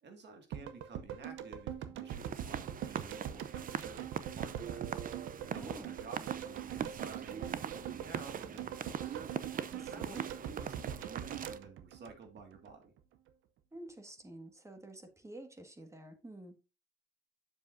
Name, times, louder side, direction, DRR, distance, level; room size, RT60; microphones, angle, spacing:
voice 1, 0.0-4.8 5.5-9.2 9.8-12.9, right 4 dB, 60° right, 5 dB, 2.0 m, -52 dB
sound 1, 0.5-12.7 13.0-13.1, right 10 dB, 80° right, 0.7 m, -43 dB
sound 2, 2.1-11.6, right 8 dB, 45° right, 0.6 m, -42 dB
voice 2, 5.6-6.0 9.7-10.2 13.7-16.6, right 1 dB, 15° right, 6 dB, 1.6 m, -50 dB
7.7 x 7.0 x 2.6 m, 0.29 s
cardioid pair, 90°, 20 cm